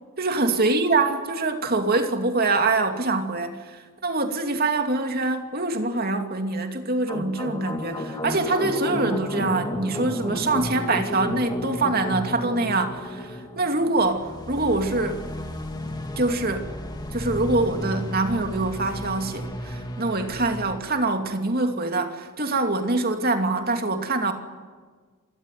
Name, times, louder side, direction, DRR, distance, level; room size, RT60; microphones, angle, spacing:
voice 1, 0.2-15.3 16.2-16.7 17.1-24.3, right 2 dB, 45° right, 5 dB, 2.6 m, -24 dB
sound 1, 7.1-20.8, left 1 dB, 20° left, 2.4 m, -33 dB
26.5 x 21.0 x 9.4 m, 1.5 s
head